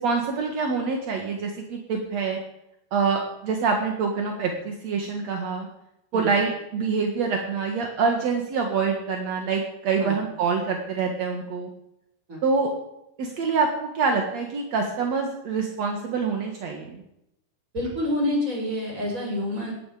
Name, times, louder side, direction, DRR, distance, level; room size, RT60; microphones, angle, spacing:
voice 1, 0.0-2.4 2.9-5.7 6.1-11.7 12.4-12.7 13.2-17.0, right 5 dB, 55° right, 2 dB, 2.0 m, -26 dB
voice 2, 17.7-19.7, left 1 dB, 15° right, -1 dB, 6.0 m, -27 dB
19.0 x 14.5 x 5.1 m, 0.82 s
omnidirectional pair, 5.6 m